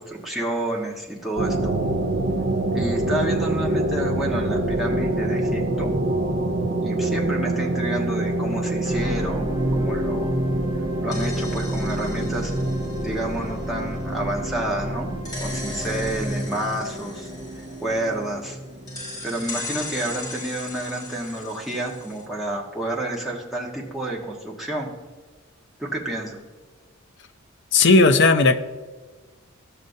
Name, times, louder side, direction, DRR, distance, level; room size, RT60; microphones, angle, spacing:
voice 1, 0.0-1.7 2.7-5.9 6.8-10.4 11.0-12.5 13.0-15.1 15.4-17.3 17.8-18.6 19.2-24.9 25.8-26.4, right 1 dB, ahead, -3 dB, 1.3 m, -29 dB
sound 1, 1.4-18.8, right 1 dB, 50° right, 0.7 m, -27 dB
sound 2, 8.8-21.2 21.8-21.9, right 1 dB, 25° right, 1.0 m, -31 dB
sound 3, 10.9-14.5 15.2-18.5 18.9-22.2, left 2 dB, 20° left, 1.7 m, -38 dB
voice 2, 27.7-28.6, left 3 dB, 60° left, 9 dB, 0.6 m, -15 dB
14.0 x 6.5 x 2.7 m, 1.4 s
head